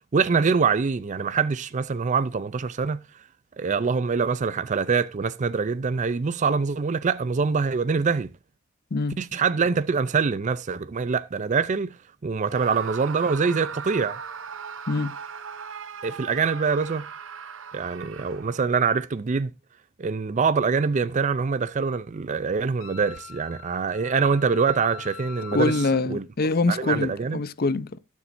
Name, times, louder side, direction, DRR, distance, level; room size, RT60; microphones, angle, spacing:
voice 1, 0.1-3.0 3.6-8.3 9.2-12.0 12.2-14.2 16.0-17.1 17.7-19.5 20.0-25.8 26.1-26.2 26.7-27.4, right 5 dB, 35° right, 0.4 m, -24 dB
Screaming, 12.5-18.7, right 6 dB, 70° right, 0.8 m, -38 dB
Wind instrument woodwind instrument, 22.8-26.0, left 7 dB, 80° left, 1.1 m, -43 dB
voice 2, 25.5-28.0, left 3 dB, 50° left, 0.6 m, -24 dB
16.5 x 7.3 x 2.6 m
head